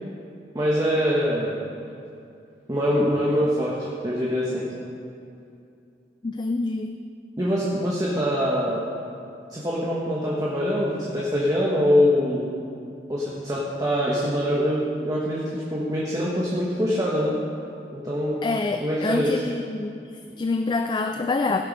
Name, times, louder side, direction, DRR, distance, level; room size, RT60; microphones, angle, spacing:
voice 1, 0.5-1.6 2.7-3.8 4.0-4.7 7.4-8.8 9.5-12.5 13.1-17.3 17.9-18.4 18.8-19.4 20.3-20.4, equal, 20° right, -5 dB, 1.4 m, -24 dB
voice 2, 6.2-7.0 18.4-20.1 20.4-21.6, left 3 dB, 25° left, 7 dB, 0.3 m, -26 dB
16.5 x 6.5 x 5.4 m, 2.6 s
head